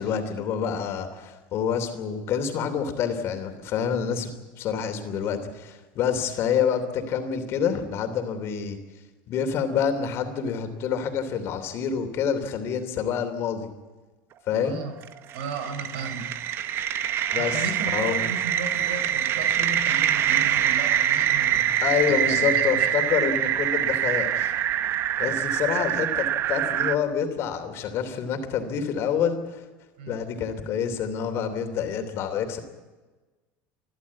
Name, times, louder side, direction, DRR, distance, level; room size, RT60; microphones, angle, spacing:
voice 1, 0.0-4.3 4.6-8.8 9.3-13.7 14.5-14.8 17.3-17.6 17.9-18.3 21.8-24.5 25.2-29.6 30.1-32.6, left 7 dB, 50° left, 7 dB, 3.1 m, -27 dB
sound 1, 15.0-27.0, right 10 dB, 45° right, 1.0 m, -24 dB
voice 2, 15.3-16.3 17.3-21.8 22.1-22.9 30.0-30.2, right 4 dB, 85° right, 8 dB, 4.4 m, -35 dB
29.5 x 12.0 x 8.5 m, 1.3 s
supercardioid pair, 115°, 6 cm